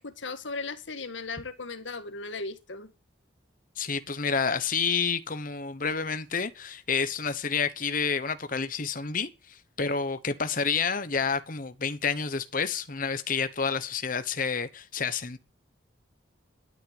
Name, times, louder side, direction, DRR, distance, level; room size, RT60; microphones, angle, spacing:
voice 1, 0.0-2.9, left 3 dB, 75° left, 1.9 m, -37 dB
voice 2, 3.8-15.4, left 5 dB, 45° left, 1.1 m, -29 dB
12.5 x 9.1 x 9.2 m
head